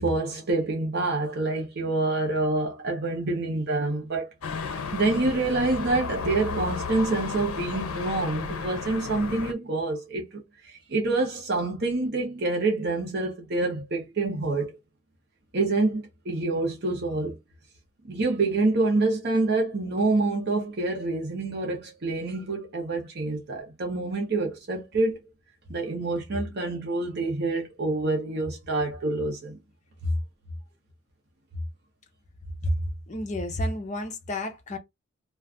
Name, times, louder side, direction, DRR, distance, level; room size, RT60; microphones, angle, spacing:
voice 1, 0.0-4.3 4.9-14.8 15.5-17.4 18.1-25.2 25.7-29.6 30.0-30.1, right 2 dB, 50° right, 0.7 m, -27 dB
sound 1, 4.4-9.5, left 5 dB, 75° left, 0.6 m, -33 dB
voice 2, 33.1-34.8, left 1 dB, 35° left, 0.6 m, -30 dB
2.4 x 2.3 x 3.4 m
head